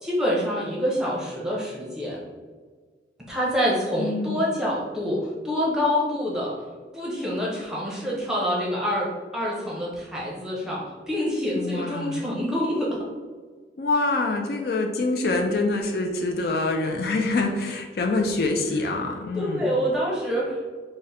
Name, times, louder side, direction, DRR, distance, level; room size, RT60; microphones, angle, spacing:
voice 1, 0.0-2.2 3.3-6.6 6.9-13.0 19.3-20.7, equal, 5° right, -5 dB, 0.8 m, -26 dB
voice 2, 4.0-4.5 11.5-12.2 13.8-19.7, left 2 dB, 60° left, 3 dB, 0.4 m, -25 dB
3.7 x 2.1 x 4.0 m, 1.5 s
head